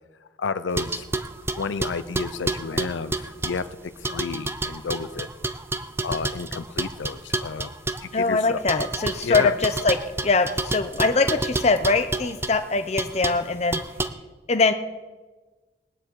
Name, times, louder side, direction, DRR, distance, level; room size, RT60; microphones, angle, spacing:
voice 1, 0.4-1.0 1.6-3.6 4.0-5.3 6.0-7.7 8.0-8.6 9.2-9.5, left 5 dB, 85° left, 12 dB, 0.5 m, -31 dB
sound 1, 0.8-3.7 4.0-8.1 8.7-12.5 13.0-13.4 13.7-14.1, right 2 dB, 15° right, 0.5 m, -29 dB
voice 2, 8.1-13.8 14.5-14.7, left 3 dB, 35° left, 9 dB, 0.7 m, -22 dB
19.5 x 9.7 x 4.7 m, 1.3 s
head